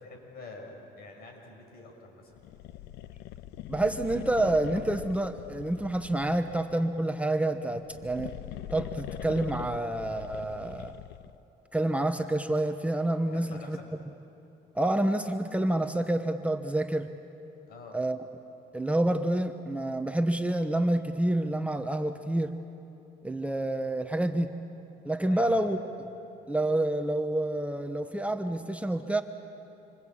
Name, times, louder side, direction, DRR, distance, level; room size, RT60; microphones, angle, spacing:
voice 1, 0.0-2.4 13.3-13.8 17.7-18.0 25.3-25.7, left 3 dB, 65° left, 2 dB, 6.3 m, -47 dB
sound 1, 2.4-6.8 7.7-11.4, left 13 dB, 80° left, 0.7 m, -42 dB
voice 2, 3.7-8.3 8.7-10.9 11.7-13.8 14.7-17.1 17.9-18.2 18.7-22.5 23.2-24.5 25.0-25.8 26.5-29.2, right 1 dB, 10° right, 6 dB, 1.0 m, -28 dB
27.0 x 25.5 x 8.6 m, 2.9 s
cardioid pair, 110°, 17 cm